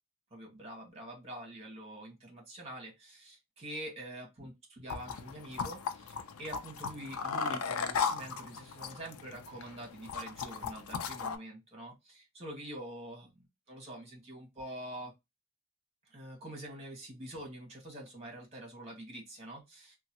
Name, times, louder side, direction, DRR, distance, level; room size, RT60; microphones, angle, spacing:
voice 1, 0.3-13.3 13.7-15.1 16.0-20.0, right 1 dB, 30° right, 0 dB, 1.3 m, -46 dB
sound 1, 4.9-11.4, left 5 dB, 80° left, 0.4 m, -37 dB
3.0 x 2.3 x 2.8 m, 0.21 s
head